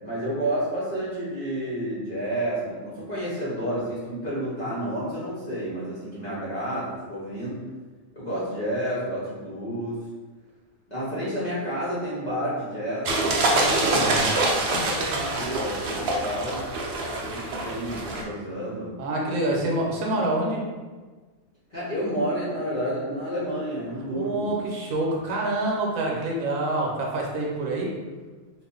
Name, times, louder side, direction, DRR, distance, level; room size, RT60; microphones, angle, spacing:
voice 1, 0.0-7.6 8.1-10.0 10.9-16.6 17.3-18.9 21.7-24.5 26.0-26.2, equal, 40° left, -9 dB, 0.8 m, -30 dB
sound 1, 13.1-18.2, right 2 dB, 60° right, 0.7 m, -25 dB
voice 2, 13.5-14.3 19.0-20.7 24.1-27.9, right 2 dB, 75° right, -2 dB, 1.1 m, -27 dB
2.5 x 2.4 x 3.7 m, 1.3 s
omnidirectional pair, 1.4 m